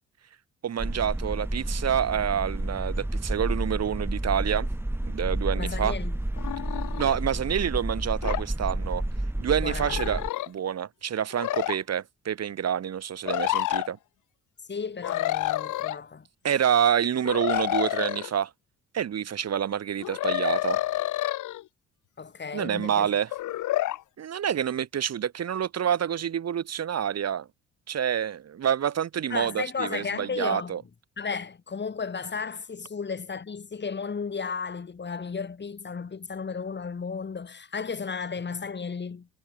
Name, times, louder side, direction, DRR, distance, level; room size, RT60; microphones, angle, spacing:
voice 1, 0.6-4.7 5.1-5.9 7.0-9.0 9.4-14.0 16.4-18.5 18.9-20.8 22.5-23.3 24.2-27.5 27.9-30.8, right 9 dB, 55° right, 3.1 m, -27 dB
sound 1, 0.8-10.3, right 1 dB, 10° right, 3.2 m, -30 dB
voice 2, 5.6-6.2 9.6-10.1 14.7-16.3 22.2-23.1 29.3-30.8 31.2-39.3, left 5 dB, 35° left, 5.8 m, -34 dB
sound 2, 6.4-7.2 8.2-8.4 9.8-10.5 11.3-11.8 13.3-13.9 15.0-16.0 17.2-18.3 20.0-21.6 23.3-24.0, left 15 dB, 80° left, 1.7 m, -29 dB
cardioid pair, 90°, 30 cm